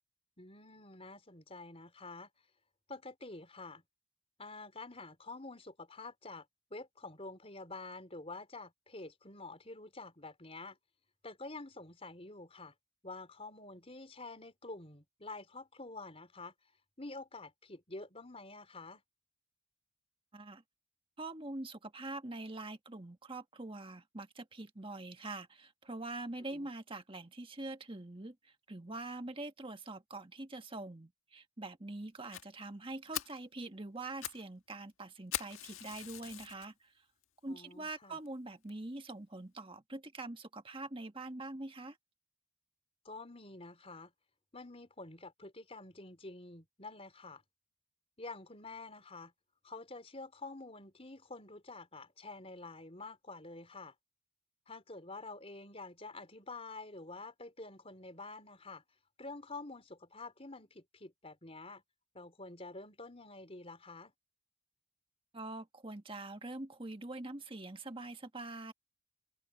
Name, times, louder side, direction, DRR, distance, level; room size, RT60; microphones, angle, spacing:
voice 1, 0.4-2.3 2.9-3.8 4.4-6.4 6.7-10.8 11.2-12.7 13.0-16.5 17.0-19.0 26.5-26.7 37.5-38.2 43.0-44.1 44.5-47.4 48.2-49.3 49.6-53.9 54.7-58.8 59.2-61.8 62.1-64.1, left 3 dB, 30° left, 4.5 m, -48 dB
voice 2, 20.3-20.6 21.2-37.0 37.4-42.0 65.3-68.7, right 2 dB, 25° right, 1.6 m, -44 dB
Fire, 32.3-32.4 32.8-32.9 33.1-33.4 34.0-34.4 34.7-34.8 35.3-36.7 37.2-37.3 37.9-38.0 38.3-38.4 38.7-38.8, left 11 dB, 70° left, 1.7 m, -41 dB
head